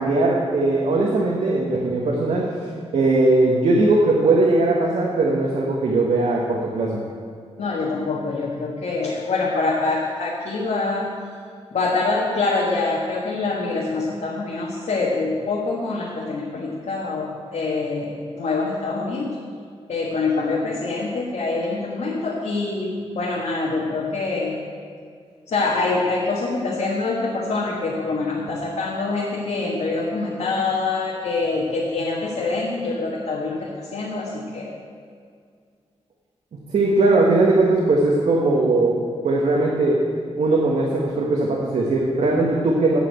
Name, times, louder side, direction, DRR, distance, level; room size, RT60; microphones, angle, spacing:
voice 1, 0.0-2.5 2.9-7.0 36.7-39.0 39.2-40.0 40.4-43.0, right 2 dB, 75° right, -3 dB, 1.4 m, -19 dB
voice 2, 7.6-11.1 11.7-19.3 19.9-24.6 25.5-34.7, left 3 dB, 85° left, -4 dB, 1.6 m, -25 dB
8.4 x 8.4 x 7.8 m, 2.2 s
wide cardioid pair, 175°, 11 cm